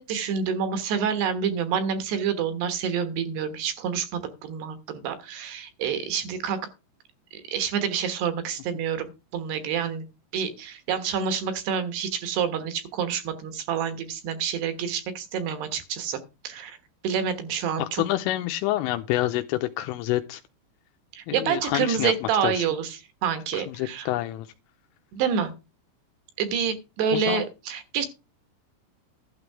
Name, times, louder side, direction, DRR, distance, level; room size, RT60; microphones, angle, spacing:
voice 1, 0.0-6.6 7.3-9.1 9.3-10.0 10.3-16.2 16.4-16.8 17.0-18.0 21.1-24.1 25.1-25.5 26.4-28.1, right 7 dB, 70° right, 10 dB, 3.0 m, -28 dB
voice 2, 17.8-20.4 21.3-22.1 22.4-22.6 23.5-24.5 27.1-27.4, left 15 dB, 85° left, 8 dB, 3.2 m, -27 dB
12.0 x 7.1 x 4.7 m, 0.28 s
omnidirectional pair, 5.8 m